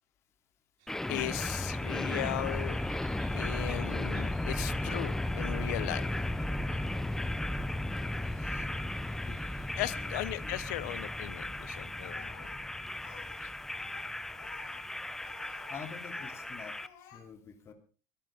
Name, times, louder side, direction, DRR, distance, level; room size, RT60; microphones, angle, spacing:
sound 1, 0.8-10.2, right 6 dB, 70° right, 5.6 m, -61 dB
sound 2, 0.9-16.9, left 1 dB, 5° left, 0.7 m, -35 dB
voice 1, 1.1-2.8 3.3-6.1 9.8-12.3 13.4-13.5, left 18 dB, 80° left, 18 dB, 1.1 m, -37 dB
voice 2, 8.3-8.7 9.3-9.4 9.8-10.1 10.4-10.8 12.5-12.6 14.7-14.8 15.7-17.7, left 7 dB, 30° left, 5 dB, 3.0 m, -48 dB
Speech, 12.0-13.4 13.7-15.8 16.1-16.5 16.7-17.2, left 7 dB, 60° left, 7.1 m, -53 dB
22.5 x 14.5 x 3.7 m, 0.36 s
cardioid pair, 140°, 9 cm